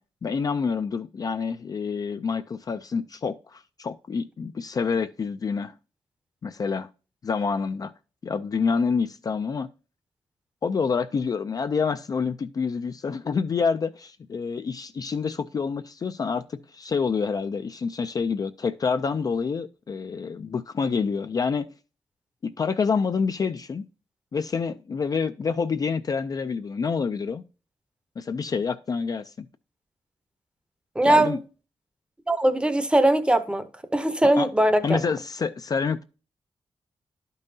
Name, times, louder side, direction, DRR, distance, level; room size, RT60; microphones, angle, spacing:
voice 1, 0.2-5.7 6.4-6.9 7.2-7.9 8.2-9.7 10.6-21.7 22.4-23.8 24.3-27.4 28.2-29.5 31.0-31.4 34.2-34.5 34.8-36.0, left 5 dB, 40° left, 0.3 m, -27 dB
voice 2, 31.0-31.4 32.3-33.7 33.9-35.0, right 1 dB, 10° right, 0.7 m, -20 dB
11.5 x 5.4 x 2.7 m
wide cardioid pair, 150°, 10 cm